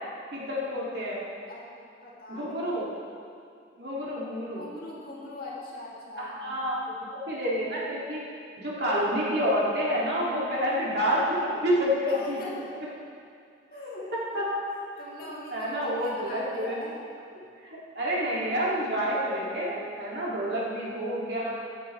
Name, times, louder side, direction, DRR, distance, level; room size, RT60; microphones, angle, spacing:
voice 1, 0.3-1.2 2.3-2.8 3.8-4.6 6.2-8.2 8.6-12.4 13.7-13.9 14.3-14.5 15.5-16.8 17.6-21.6, equal, 55° right, -6 dB, 2.5 m, -28 dB
voice 2, 2.0-2.7 3.1-3.2 4.5-6.6 12.1-12.5 13.7-14.4 15.0-16.9 20.4-20.7, left 2 dB, 50° left, -6 dB, 2.6 m, -41 dB
15.0 x 10.0 x 3.3 m, 2.3 s
head